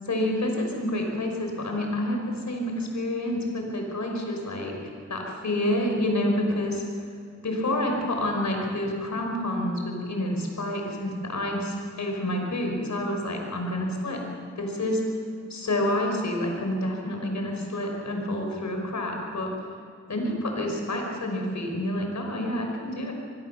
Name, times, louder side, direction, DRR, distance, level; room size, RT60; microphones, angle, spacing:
voice 1, 0.0-4.7 5.1-6.8 7.4-14.2 14.6-15.0 15.5-19.5 20.1-23.1, left 1 dB, 70° left, 2 dB, 5.6 m, -28 dB
25.5 x 20.0 x 7.1 m, 2.3 s
cardioid pair, 60°, 29 cm